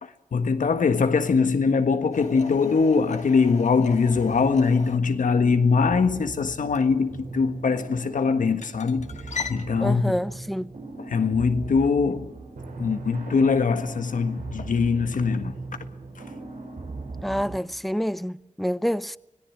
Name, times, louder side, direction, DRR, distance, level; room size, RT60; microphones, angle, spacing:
voice 1, 0.0-9.1 9.5-10.2 11.0-12.3 12.8-15.6, left 5 dB, 85° left, 1.6 m, -22 dB
sound 1, 2.1-9.7, left 5 dB, 60° left, 2.1 m, -40 dB
sound 2, 4.1-17.6, right 3 dB, 90° right, 5.0 m, -39 dB
voice 2, 9.8-10.7 17.2-19.2, equal, ahead, 0.8 m, -27 dB
25.5 x 18.0 x 7.4 m
cardioid pair, 55°, 13 cm